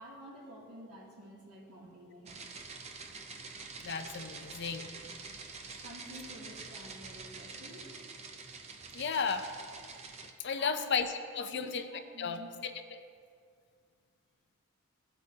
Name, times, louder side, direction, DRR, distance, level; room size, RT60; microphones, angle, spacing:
voice 1, 0.0-2.4 5.8-8.0 10.6-10.9 11.4-12.5, right 1 dB, 90° right, -4 dB, 2.6 m, -50 dB
sound 1, 2.3-10.3, right 4 dB, 30° right, 0.6 m, -47 dB
voice 2, 3.8-4.9 8.9-9.5 10.4-11.1 11.3-11.9 12.2-13.0, left 6 dB, 50° left, 8 dB, 0.6 m, -34 dB
16.5 x 8.0 x 2.8 m, 2.2 s
head